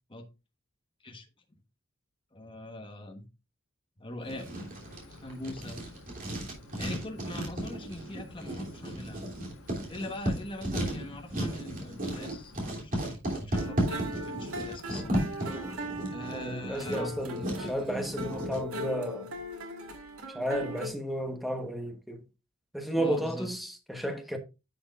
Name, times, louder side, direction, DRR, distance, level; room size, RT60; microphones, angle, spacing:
voice 1, 2.3-3.3 4.0-4.6 5.1-5.8 6.8-9.4 9.9-15.1 16.1-17.2 22.9-23.5, left 1 dB, 25° left, 1.3 m, -42 dB
sound 1, 4.2-12.7, left 2 dB, 85° left, 1.4 m, -52 dB
Writing, 4.3-18.6, right 1 dB, 40° right, 3.0 m, -35 dB
sound 2, 13.5-20.9, equal, 80° right, 1.8 m, -39 dB
voice 2, 16.3-19.3 20.3-22.2 22.7-24.4, right 1 dB, ahead, 1.2 m, -33 dB
10.5 x 6.2 x 2.4 m
head